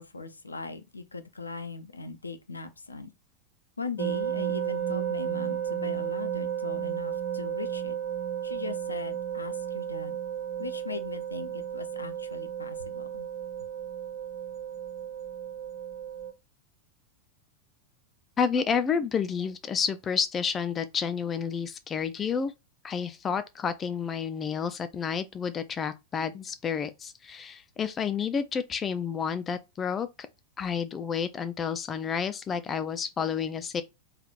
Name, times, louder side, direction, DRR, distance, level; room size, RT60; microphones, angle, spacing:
voice 1, 0.0-3.1 3.8-7.9 8.4-10.2 10.6-13.3, left 4 dB, 80° left, 0.6 m, -39 dB
sound 1, 4.0-16.3, right 9 dB, 35° right, 0.8 m, -33 dB
voice 2, 18.4-22.5 22.8-30.1 30.6-33.8, left 6 dB, 20° left, 0.5 m, -30 dB
4.8 x 3.2 x 2.4 m
figure-of-eight pair, 90°, 0 cm